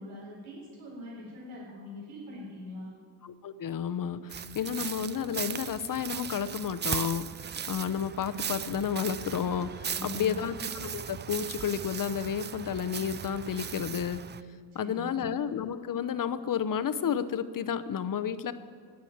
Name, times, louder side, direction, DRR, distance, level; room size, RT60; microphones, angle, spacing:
voice 1, 0.0-3.0 9.9-10.4 14.8-15.2, equal, 80° right, -4 dB, 4.2 m, -42 dB
voice 2, 3.2-7.2 7.7-14.3 14.7-18.5, left 8 dB, 45° left, 13 dB, 0.8 m, -31 dB
sound 1, 4.3-14.4, right 8 dB, 25° right, 0.3 m, -38 dB
18.0 x 6.3 x 8.7 m, 2.2 s
cardioid pair, 80°, 47 cm